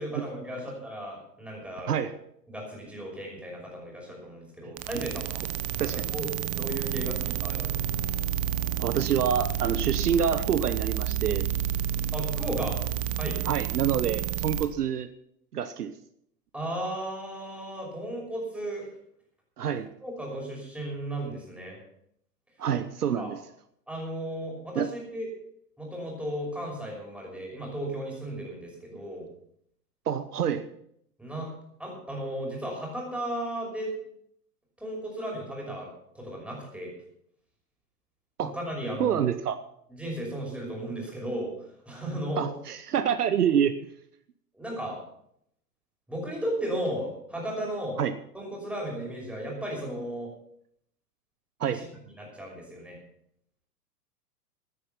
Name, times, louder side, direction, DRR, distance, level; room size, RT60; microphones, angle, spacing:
voice 1, 0.0-1.9 2.5-5.5 5.9-6.3 6.5-7.8 12.1-12.8 13.2-13.4 16.5-18.9 20.0-21.8 23.2-23.3 23.9-25.3 25.8-29.3 31.2-31.5 31.8-33.9 34.8-35.9 36.1-36.9 38.4-39.2 39.9-41.5 41.9-42.5 44.5-45.0 46.1-48.0 48.3-50.3 51.6-51.9 52.2-53.0, right 1 dB, 5° right, -2 dB, 5.6 m, -35 dB
voice 2, 4.6-5.1 5.8-6.0 8.8-11.5 13.4-15.1 15.5-15.9 19.6-19.9 22.6-23.4 24.7-24.9 30.1-30.7 38.4-38.5 39.0-39.6 42.4-43.7 48.0-48.2 51.6-51.8, right 8 dB, 70° right, 12 dB, 1.0 m, -27 dB
sound 1, 4.8-14.7, right 10 dB, 30° right, 1.1 m, -30 dB
15.0 x 9.8 x 5.9 m, 0.71 s
figure-of-eight pair, 105°, 48 cm